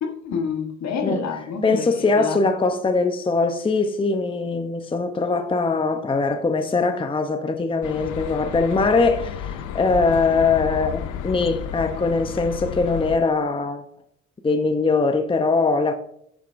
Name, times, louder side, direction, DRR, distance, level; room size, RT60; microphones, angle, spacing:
voice 1, 0.0-2.4, left 6 dB, 65° left, 1.4 m, -28 dB
voice 2, 1.6-13.8 14.4-15.9, left 3 dB, 15° left, 0.7 m, -21 dB
sound 1, 7.8-13.2, left 9 dB, 80° left, 0.6 m, -32 dB
8.4 x 6.7 x 2.5 m
cardioid pair, 90°, 30 cm